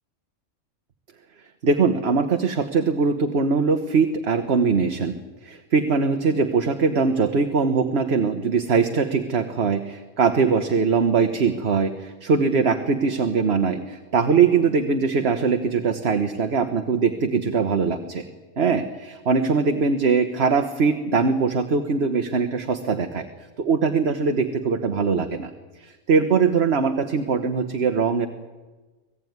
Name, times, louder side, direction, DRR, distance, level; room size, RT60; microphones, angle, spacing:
voice 1, 1.6-18.2 18.6-23.3 23.6-25.5 25.8-28.3, right 5 dB, 50° right, 7 dB, 1.4 m, -21 dB
26.0 x 17.5 x 9.5 m, 1.3 s
omnidirectional pair, 1.4 m